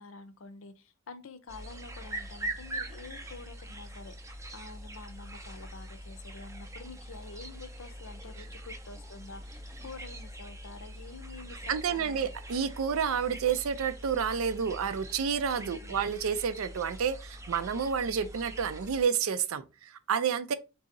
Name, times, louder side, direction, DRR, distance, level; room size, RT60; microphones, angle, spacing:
voice 1, 0.0-12.3 15.6-16.0, left 3 dB, 70° left, 0.6 m, -48 dB
sound 1, 1.5-19.0, right 1 dB, 15° right, 0.4 m, -43 dB
voice 2, 11.7-20.5, right 7 dB, 80° right, 0.4 m, -30 dB
4.0 x 2.8 x 3.7 m
head